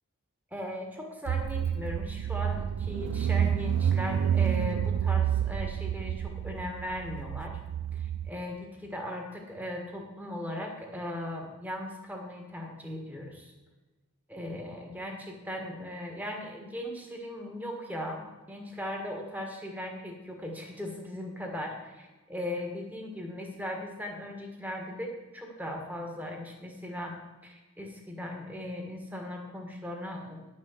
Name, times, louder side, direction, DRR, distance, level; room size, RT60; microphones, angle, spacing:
voice 1, 0.5-7.6 7.9-13.5 14.3-27.1 27.4-30.5, left 1 dB, 5° right, 1 dB, 1.5 m, -38 dB
Car / Engine, 1.3-8.3, right 9 dB, 90° right, 0.3 m, -29 dB
10.5 x 6.3 x 7.2 m, 1.2 s
head